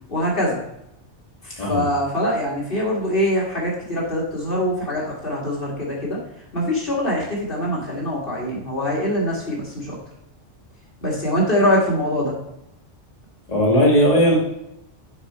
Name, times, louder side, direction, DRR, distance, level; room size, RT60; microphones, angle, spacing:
voice 1, 0.1-0.6 1.6-6.2 6.5-10.0 11.0-12.3, equal, 50° left, -4 dB, 2.4 m, -23 dB
voice 2, 13.5-14.3, equal, 35° left, -5 dB, 2.1 m, -17 dB
7.1 x 5.1 x 5.6 m, 0.82 s
omnidirectional pair, 1.2 m